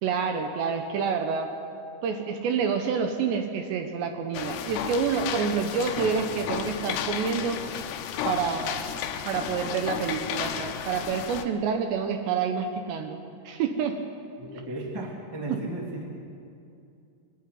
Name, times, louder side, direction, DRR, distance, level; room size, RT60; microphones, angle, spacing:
voice 1, 0.0-1.5 2.0-7.6 8.2-8.9 9.2-14.0 15.5-15.6, right 6 dB, 75° right, 6 dB, 2.9 m, -28 dB
sound 1, 4.3-11.4, left 9 dB, 75° left, 2.7 m, -33 dB
voice 2, 14.4-16.3, right 1 dB, 10° right, -1 dB, 1.1 m, -35 dB
23.0 x 12.0 x 9.8 m, 2.5 s
omnidirectional pair, 5.7 m